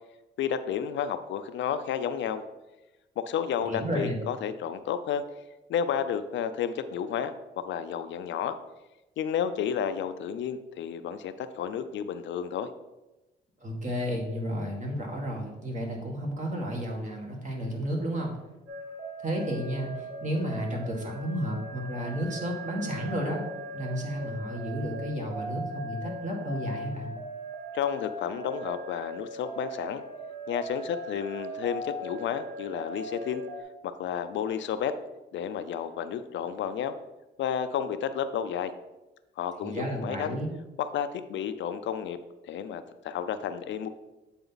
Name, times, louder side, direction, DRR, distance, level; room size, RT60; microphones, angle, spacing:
voice 1, 0.4-2.4 3.2-5.2 5.7-8.5 9.2-12.7 27.7-30.0 30.5-33.4 33.8-34.9 35.3-36.9 37.4-38.7 39.4-40.4 40.9-42.2 42.4-43.9, left 8 dB, 70° left, 10 dB, 0.5 m, -31 dB
voice 2, 3.6-4.2 13.6-18.3 19.2-23.4 23.7-27.1 39.6-40.5, equal, 40° right, 0 dB, 1.9 m, -32 dB
sound 1, 18.7-33.6, right 1 dB, 10° right, 1.5 m, -39 dB
8.1 x 4.3 x 3.9 m, 1.0 s
cardioid pair, 90°, 20 cm